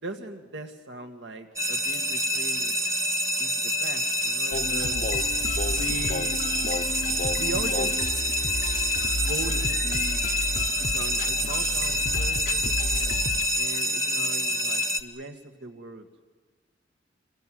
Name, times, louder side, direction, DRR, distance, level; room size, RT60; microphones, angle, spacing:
voice 1, 0.0-2.8 3.4-5.0 5.7-6.4 7.4-8.0 9.2-10.2 10.7-13.2 13.5-16.1, right 2 dB, 75° right, 5 dB, 2.1 m, -39 dB
sound 1, 1.6-15.0, left 1 dB, 15° right, 1.3 m, -27 dB
sound 2, 4.5-13.5, left 2 dB, 45° left, 0.8 m, -32 dB
26.5 x 23.0 x 7.9 m, 1.5 s
head